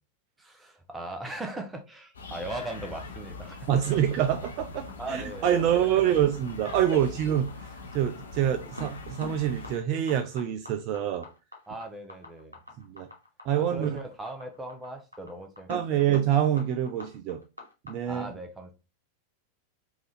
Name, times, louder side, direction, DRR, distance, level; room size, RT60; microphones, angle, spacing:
voice 1, 0.4-3.7 4.8-6.0 7.1-7.2 11.7-12.6 13.6-16.1 18.1-18.7, right 2 dB, 10° right, 0.8 m, -39 dB
sound 1, 2.1-9.8, left 3 dB, 70° left, 0.7 m, -42 dB
voice 2, 3.7-7.5 7.9-11.3 12.9-13.1 13.5-14.0 15.7-17.4 17.8-18.3, right 10 dB, 40° right, 0.4 m, -26 dB
sound 2, 4.3-17.9, left 1 dB, 85° right, 0.9 m, -45 dB
3.5 x 2.6 x 3.2 m
figure-of-eight pair, 90°, 0 cm